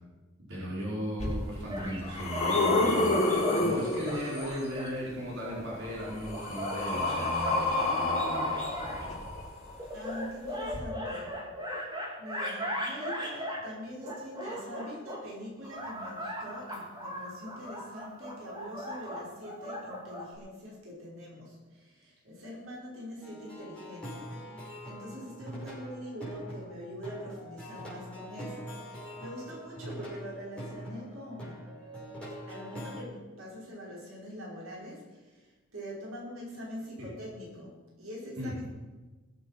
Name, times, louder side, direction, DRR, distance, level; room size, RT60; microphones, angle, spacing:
voice 1, 0.5-9.1 37.0-37.1 38.4-38.7, equal, 65° right, -5 dB, 4.9 m, -37 dB
sound 1, 1.2-1.3 1.8-4.6 5.8-9.7 10.7-10.8, left 2 dB, 35° left, 5.7 m, -29 dB
sound 2, 1.7-3.6 4.0-4.9 5.4-9.0 9.8-13.7 14.0-15.2 15.6-20.3, equal, 20° right, 3.3 m, -38 dB
voice 2, 9.9-11.4 12.2-31.6 32.4-38.6, equal, 90° right, -4 dB, 5.3 m, -44 dB
Plucked string instrument, 23.2-33.0, equal, 5° left, 5.8 m, -43 dB
21.0 x 8.3 x 6.0 m, 1.2 s
head